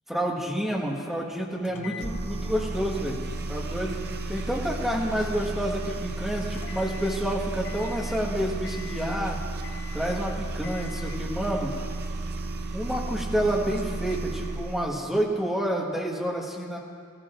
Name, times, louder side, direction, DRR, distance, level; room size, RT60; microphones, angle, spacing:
voice 1, 0.1-3.2 3.5-3.9 4.3-9.4 9.9-11.7 12.7-16.8, equal, ahead, -3 dB, 1.4 m, -29 dB
sound 1, 1.6-7.3 7.6-8.2 8.6-9.3 9.6-10.2 10.6-11.3, left 5 dB, 55° left, 0.6 m, -45 dB
sound 2, 2.0-15.0, right 2 dB, 50° right, 0.7 m, -33 dB
18.5 x 14.0 x 2.5 m, 2.1 s
head